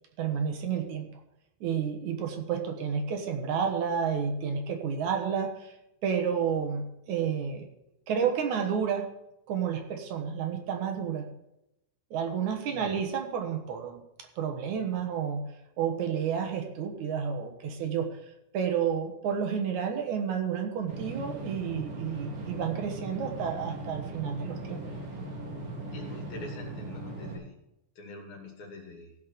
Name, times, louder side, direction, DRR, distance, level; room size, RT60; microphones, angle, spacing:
voice 1, 0.2-1.1 1.6-5.7 6.0-7.7 8.1-9.1 9.5-11.3 12.1-14.0 14.4-15.4 15.8-18.2 18.5-24.8, right 7 dB, 70° right, 4 dB, 2.5 m, -30 dB
voice 2, 12.7-13.0 25.9-27.5 28.0-29.2, left 2 dB, 60° left, 0 dB, 3.9 m, -44 dB
sound 1, 20.9-27.4, right 2 dB, 85° right, 4.0 m, -39 dB
16.0 x 5.3 x 6.8 m, 0.85 s
omnidirectional pair, 3.8 m